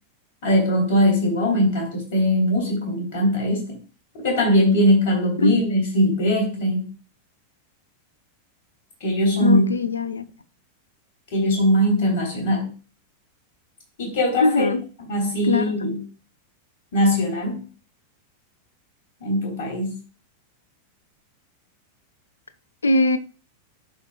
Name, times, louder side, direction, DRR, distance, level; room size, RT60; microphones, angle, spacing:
voice 1, 0.4-3.6 4.2-6.9 9.0-9.7 11.3-12.7 14.0-14.7 15.1-16.0 16.9-17.6 19.2-20.0, equal, 50° left, 3.7 m, -20 dB
voice 2, 9.4-10.2 14.4-14.8 15.4-15.7 22.8-23.2, left 3 dB, 75° left, 0.5 m, -20 dB
13.5 x 5.1 x 2.4 m
figure-of-eight pair, 90°, 0 cm